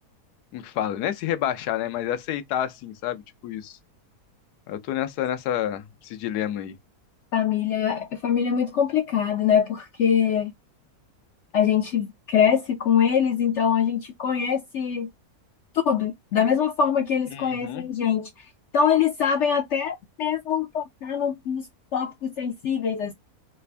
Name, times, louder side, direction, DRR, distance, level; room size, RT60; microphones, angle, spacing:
voice 1, 0.5-3.8 4.7-6.8 17.3-17.9, left 11 dB, 85° left, 1.2 m, -29 dB
voice 2, 7.3-10.5 11.5-15.1 15.8-18.5 18.7-21.7 21.9-23.1, left 7 dB, 70° left, 0.7 m, -23 dB
3.3 x 2.5 x 3.2 m
omnidirectional pair, 1.6 m